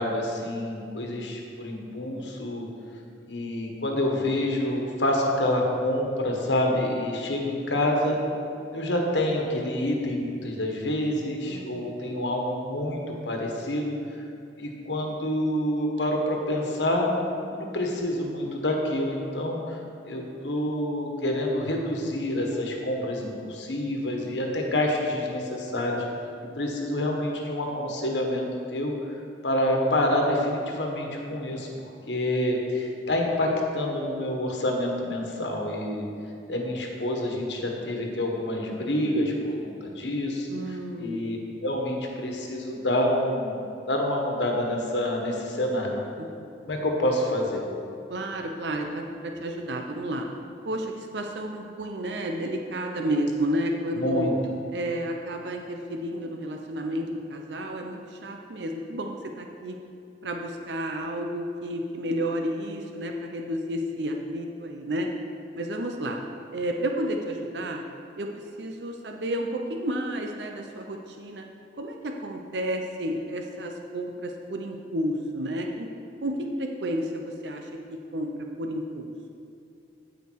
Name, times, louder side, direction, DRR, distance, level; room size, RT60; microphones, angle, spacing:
voice 1, 0.0-2.7 3.3-8.2 8.7-14.0 14.6-17.1 17.5-19.8 20.0-26.0 26.5-28.4 28.7-28.9 29.4-36.0 36.5-46.0 46.7-47.6 53.9-54.3, left 1 dB, 80° left, 1 dB, 1.5 m, -27 dB
voice 2, 11.4-12.0 40.5-41.3 46.2-46.5 48.1-50.3 50.6-54.3 54.7-59.8 60.2-65.1 65.6-66.2 66.5-67.8 68.2-68.3 68.6-71.4 71.8-75.9 76.2-79.1, right 1 dB, 70° right, 3 dB, 0.7 m, -31 dB
15.0 x 5.1 x 4.7 m, 2.6 s
head